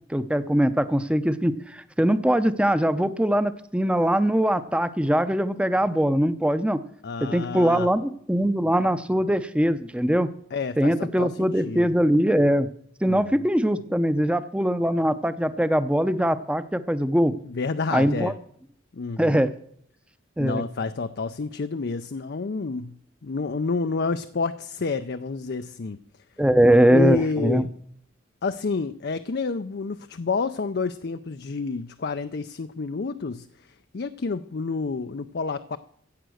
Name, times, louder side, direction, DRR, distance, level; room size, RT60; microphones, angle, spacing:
voice 1, 0.1-6.8 7.2-10.3 10.8-12.7 13.0-17.3 17.9-18.3 19.2-19.5 20.4-20.6 26.4-27.7, equal, 5° right, 13 dB, 0.6 m, -22 dB
voice 2, 7.0-7.9 10.5-11.9 13.0-13.4 17.4-18.4 18.9-19.4 20.4-23.0 23.2-26.0 26.9-27.7 28.4-33.5 33.9-35.8, left 4 dB, 55° left, 10 dB, 0.5 m, -29 dB
15.5 x 8.0 x 6.3 m, 0.66 s
head